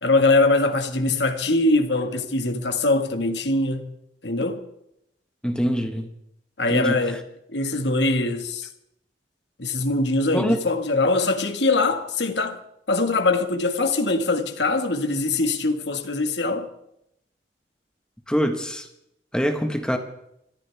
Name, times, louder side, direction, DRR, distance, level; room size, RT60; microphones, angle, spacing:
voice 1, 0.0-3.9 4.2-4.7 6.6-7.2 7.5-8.7 9.6-12.6 12.9-16.7, left 2 dB, 80° left, 1.9 m, -22 dB
voice 2, 5.4-6.1 6.7-7.0 10.3-10.6 18.3-18.9 19.3-20.0, equal, 5° left, 1.4 m, -24 dB
26.0 x 14.5 x 3.6 m
head